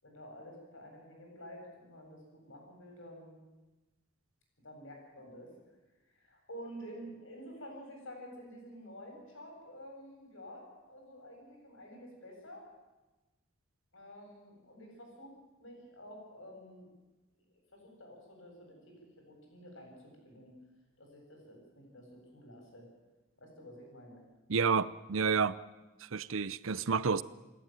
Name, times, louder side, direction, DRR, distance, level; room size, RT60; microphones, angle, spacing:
voice 1, 0.0-3.3 4.6-5.5 6.1-12.6 13.9-16.9 17.7-19.0 19.3-20.5 21.0-22.9 23.4-24.2, equal, 75° left, 7.7 m, -50 dB
voice 2, 24.5-25.6 26.1-27.2, right 5 dB, 85° right, 0.7 m, -30 dB
27.5 x 11.5 x 9.2 m
head